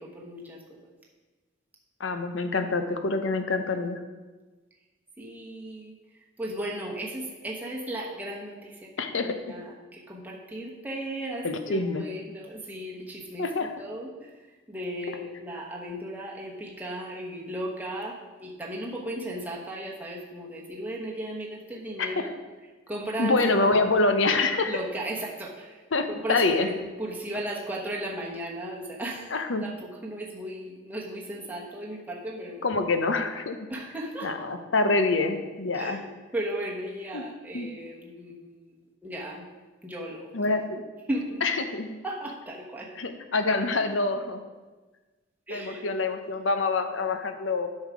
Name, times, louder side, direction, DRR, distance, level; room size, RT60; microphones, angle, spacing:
voice 1, 0.1-0.6 5.2-5.9 6.4-8.7 9.2-13.4 13.8-14.1 14.7-18.1 18.4-22.3 22.9-23.4 23.6-23.7 24.7-25.7 26.2-29.2 29.6-29.7 30.0-32.6 33.7-34.3 35.8-36.1 36.3-38.6 39.0-39.4 39.8-40.3 41.1-41.4 42.0-42.9 45.5-45.8, right 1 dB, 10° right, -3 dB, 1.1 m, -35 dB
voice 2, 2.0-4.0 9.0-9.4 11.4-12.1 13.4-13.7 15.1-15.2 22.0-22.3 23.2-24.8 25.9-26.7 29.3-29.7 32.6-33.6 34.2-36.0 37.1-37.2 37.5-37.7 40.3-40.8 41.4-41.9 42.9-44.4 45.5-47.7, left 3 dB, 75° left, 7 dB, 0.8 m, -26 dB
8.7 x 5.6 x 4.9 m, 1.3 s
head